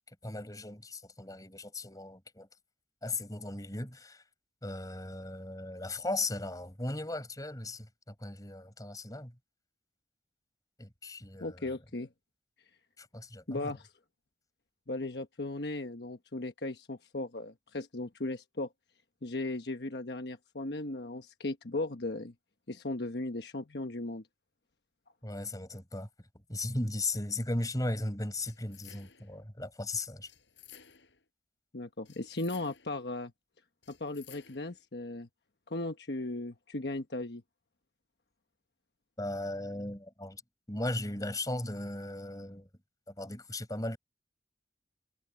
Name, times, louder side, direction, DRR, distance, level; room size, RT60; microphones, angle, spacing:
voice 1, 0.2-2.5 3.0-4.2 4.6-9.3 10.8-11.7 13.0-13.7 25.2-26.1 26.5-30.3 39.2-40.4 40.7-42.7 43.1-44.0, left 2 dB, 20° left, 5.3 m, -37 dB
voice 2, 11.4-12.1 13.5-13.9 14.9-18.7 19.2-22.3 22.7-24.2 31.7-33.3 33.9-35.3 35.7-37.4, left 2 dB, 65° left, 1.2 m, -37 dB
sound 1, 28.4-29.4 30.2-31.2 32.1-33.0 33.8-34.8, left 9 dB, 80° left, 4.8 m, -56 dB
head